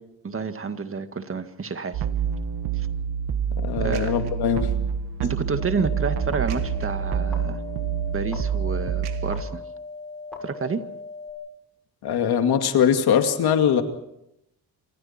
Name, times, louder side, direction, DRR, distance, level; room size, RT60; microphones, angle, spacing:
voice 1, 0.2-2.1 3.8-4.2 5.2-7.6 8.1-9.6 10.4-10.8, right 5 dB, 35° right, 9 dB, 1.9 m, -29 dB
sound 1, 1.9-9.4, right 7 dB, 85° right, 1.4 m, -27 dB
voice 2, 3.6-4.7 12.0-13.8, left 8 dB, 80° left, 6 dB, 2.3 m, -21 dB
sound 2, 5.6-11.3, left 3 dB, ahead, 6.6 m, -39 dB
27.0 x 25.0 x 4.4 m, 0.80 s
cardioid pair, 95°, 38 cm